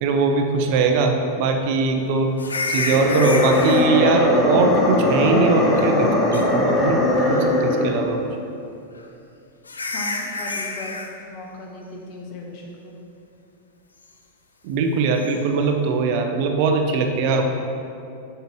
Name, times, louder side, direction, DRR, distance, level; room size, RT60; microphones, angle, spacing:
voice 1, 0.0-2.3 2.7-7.0 7.2-8.3 14.6-17.4, right 4 dB, 45° right, 4 dB, 0.6 m, -21 dB
sound 1, 2.4-3.8 5.5-6.0 6.3-6.4 7.1-7.6 9.0-9.1 9.7-11.1 15.2-15.4, left 3 dB, 75° left, 0.6 m, -29 dB
sound 2, 2.7-8.1, left 1 dB, 20° left, 1.0 m, -20 dB
voice 2, 9.9-11.0 11.3-12.9, left 1 dB, 40° left, 0 dB, 1.2 m, -37 dB
7.8 x 6.8 x 3.1 m, 2.6 s
figure-of-eight pair, 90°, 0 cm